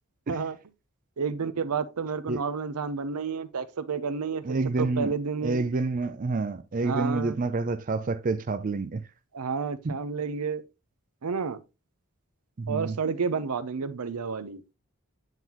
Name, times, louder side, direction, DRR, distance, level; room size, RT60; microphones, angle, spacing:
voice 1, 1.2-5.6 6.8-7.4 9.3-10.6 11.2-11.6 12.7-14.6, right 5 dB, 90° right, 0.6 m, -30 dB
voice 2, 4.4-5.1 5.4-9.1 9.8-10.0 12.6-13.0, right 3 dB, 35° right, 0.4 m, -28 dB
9.0 x 3.9 x 2.9 m
head